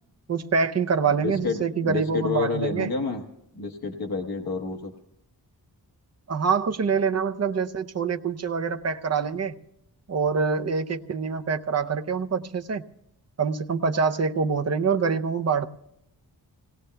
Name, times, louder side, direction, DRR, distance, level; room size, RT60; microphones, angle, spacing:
voice 1, 0.3-2.9 6.3-9.6 10.1-12.9 13.4-15.7, right 5 dB, 40° right, 7 dB, 0.6 m, -25 dB
voice 2, 1.2-3.2 3.5-4.9, left 4 dB, 65° left, 2 dB, 1.2 m, -29 dB
26.5 x 18.5 x 2.2 m, 0.84 s
wide cardioid pair, 120°, 39 cm